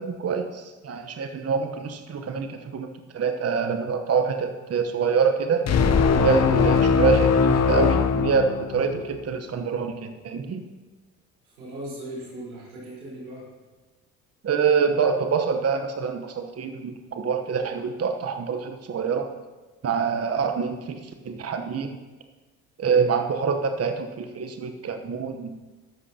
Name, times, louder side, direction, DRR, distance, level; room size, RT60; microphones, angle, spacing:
voice 1, 0.0-5.6 6.1-10.6 14.4-19.3 19.8-22.0 22.8-25.5, right 6 dB, 35° right, 6 dB, 1.1 m, -25 dB
sound 1, 5.7-9.1, left 6 dB, 40° left, 0.9 m, -21 dB
voice 2, 11.4-13.5, right 1 dB, 90° right, -5 dB, 4.5 m, -38 dB
15.0 x 12.5 x 2.9 m, 1.2 s
hypercardioid pair, 55°, 42 cm